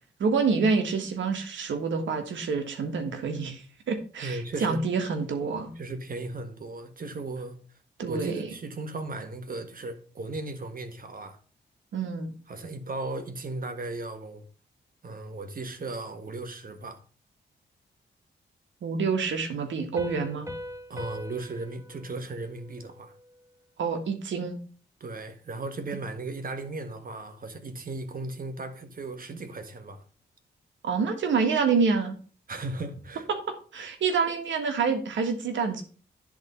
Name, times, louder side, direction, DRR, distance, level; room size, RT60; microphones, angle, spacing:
voice 1, 0.2-5.7 8.0-8.4 11.9-12.3 18.8-20.5 23.8-24.6 30.8-32.2 33.3-33.4 33.7-35.8, right 5 dB, 90° right, 1.5 m, -27 dB
voice 2, 4.2-4.8 5.7-7.6 8.1-11.4 12.5-14.4 15.0-17.0 20.9-23.1 25.0-30.0 32.5-33.3 33.8-33.9, right 2 dB, 50° right, 1.6 m, -36 dB
Piano, 20.0-23.4, left 1 dB, 15° right, 1.5 m, -42 dB
10.5 x 4.1 x 5.5 m
cardioid pair, 70°, 19 cm